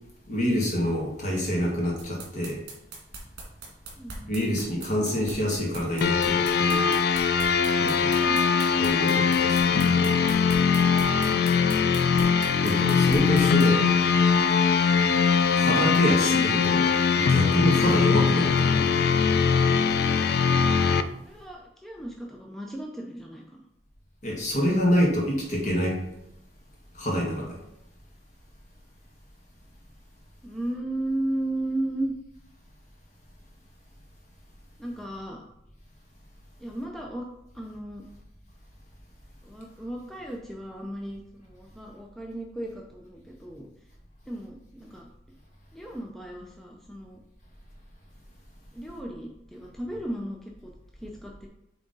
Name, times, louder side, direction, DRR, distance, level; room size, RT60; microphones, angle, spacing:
voice 1, 0.3-2.6 4.3-7.0 7.8-8.2 8.8-10.1 12.6-13.9 15.5-18.9 24.2-26.0 26.9-27.6, equal, 40° left, -1 dB, 1.6 m, -27 dB
sound 1, 2.0-13.7, right 4 dB, 65° right, 2.1 m, -41 dB
voice 2, 4.0-4.5 21.2-23.6 30.4-32.1 34.8-35.4 36.6-37.3 37.5-38.0 39.4-43.7 44.3-45.1 45.7-47.2 48.7-50.7 51.0-51.5, right 1 dB, ahead, -1 dB, 0.5 m, -35 dB
sound 2, 6.0-21.0, left 6 dB, 60° left, 0.4 m, -21 dB
7.5 x 3.5 x 3.9 m, 0.84 s
head